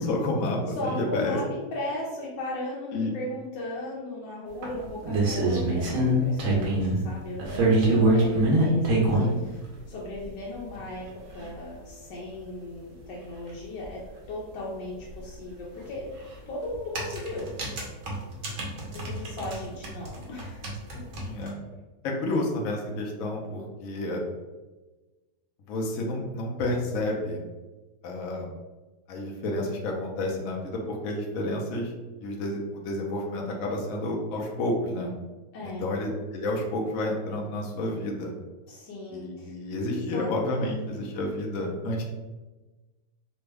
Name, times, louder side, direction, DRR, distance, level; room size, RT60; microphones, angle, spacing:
voice 1, 0.0-1.4 2.9-3.1 5.5-5.7 18.4-18.9 21.2-21.6 22.0-24.2 25.7-27.4 28.0-28.5 29.1-31.9 32.2-35.1 35.6-38.3 39.1-42.0, left 1 dB, 65° left, -1 dB, 0.9 m, -30 dB
voice 2, 0.7-9.6 9.9-11.1 11.3-14.0 14.3-16.0 16.5-17.5 19.0-20.6 35.5-35.9 38.7-39.5 40.1-41.0, left 1 dB, 90° left, -5 dB, 1.3 m, -37 dB
sound 1, 4.6-7.0 7.4-9.3 10.2-10.3 10.7-10.8 11.1-11.2 11.4-11.5 13.5-13.6 13.8-13.9 15.9-16.1 16.7-19.6 19.8-21.5, right 1 dB, 65° right, 1.1 m, -24 dB
3.3 x 2.1 x 3.3 m, 1.2 s
omnidirectional pair, 1.8 m